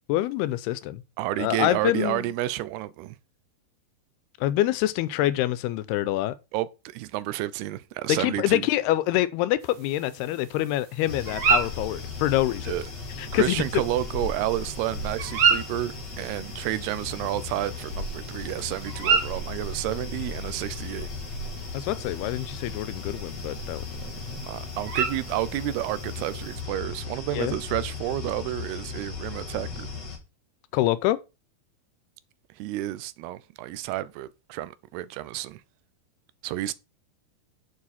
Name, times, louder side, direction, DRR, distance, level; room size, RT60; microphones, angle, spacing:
voice 1, 0.1-1.0 1.4-2.3 4.4-6.4 8.1-12.7 13.2-13.6 21.7-24.5 27.3-27.6 30.7-31.2, left 15 dB, 90° left, 2.7 m, -26 dB
voice 2, 1.2-3.2 6.5-8.7 12.7-12.8 13.3-21.1 24.4-29.9 32.6-35.6 36.4-36.8, right 15 dB, 85° right, 2.7 m, -30 dB
sound 1, 9.6-26.6, right 6 dB, 55° right, 1.6 m, -32 dB
sound 2, 11.1-30.2, left 3 dB, 45° left, 3.8 m, -36 dB
9.7 x 6.9 x 4.3 m
omnidirectional pair, 4.5 m